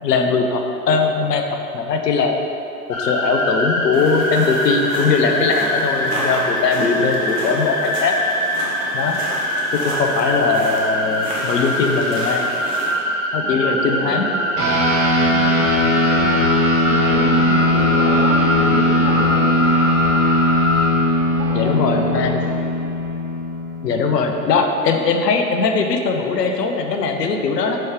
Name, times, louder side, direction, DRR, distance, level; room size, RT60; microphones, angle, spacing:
voice 1, 0.0-2.4 2.9-8.1 8.9-9.2 9.7-12.5 13.3-14.3 21.5-22.3 23.8-27.8, left 4 dB, 75° left, 4 dB, 0.8 m, -20 dB
sound 1, 2.9-20.9, left 1 dB, 60° left, 1.4 m, -23 dB
sound 2, 3.9-12.9, right 1 dB, 10° right, 0.3 m, -31 dB
voice 2, 13.4-14.7 15.2-16.4 16.9-20.3 21.3-22.5, right 2 dB, 50° right, -3 dB, 1.4 m, -30 dB
sound 3, 14.6-24.3, left 1 dB, 30° right, 1.4 m, -19 dB
5.5 x 5.2 x 3.7 m, 2.7 s
figure-of-eight pair, 100°, 49 cm